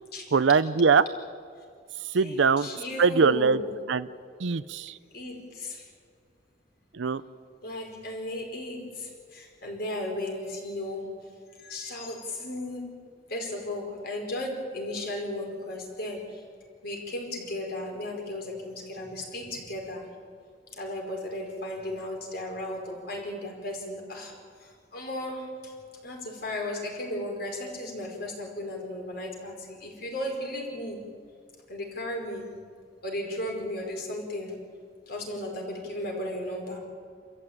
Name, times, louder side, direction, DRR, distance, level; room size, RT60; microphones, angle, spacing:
voice 1, 0.3-1.0 2.1-2.7 3.0-3.6 3.9-4.1 4.4-5.0 6.9-7.2, right 5 dB, 85° right, 14 dB, 0.6 m, -22 dB
voice 2, 2.1-3.8 5.1-5.9 7.6-11.1 11.6-12.9 13.3-16.4 16.8-20.1 20.8-24.3 24.6-25.7 26.0-31.0 31.7-32.5 33.0-34.6 35.1-36.8, left 1 dB, 60° left, 1 dB, 5.1 m, -35 dB
28.5 x 14.0 x 8.9 m, 2.2 s
head